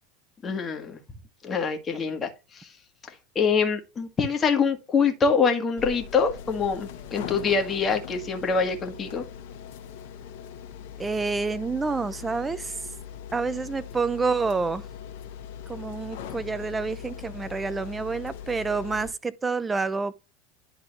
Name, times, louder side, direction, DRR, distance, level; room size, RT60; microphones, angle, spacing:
voice 1, 0.4-1.0 1.4-2.7 3.0-9.2, left 5 dB, 25° left, 1.7 m, -25 dB
sound 1, 5.8-19.1, left 8 dB, 70° left, 1.5 m, -40 dB
voice 2, 11.0-12.8 13.3-14.8 15.7-20.1, right 4 dB, 15° right, 0.6 m, -28 dB
11.0 x 3.9 x 3.0 m
supercardioid pair, 120°, 0 cm